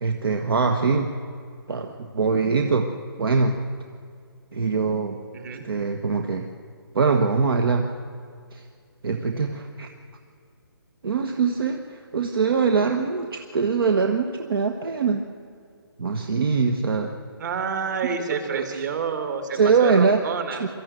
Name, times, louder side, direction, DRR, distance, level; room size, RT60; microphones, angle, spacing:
voice 1, 0.0-1.1 1.7-3.6 4.5-5.2 5.6-6.5 6.9-7.9 8.5-8.6 9.0-9.9 11.0-15.3 16.0-17.2 18.5-18.6 19.5-20.2 20.6-20.7, right 5 dB, 65° right, 5 dB, 1.4 m, -23 dB
voice 2, 5.3-5.7 17.4-20.6, right 6 dB, 45° right, 7 dB, 2.6 m, -29 dB
23.0 x 13.5 x 9.2 m, 2.3 s
hypercardioid pair, 155°, 13 cm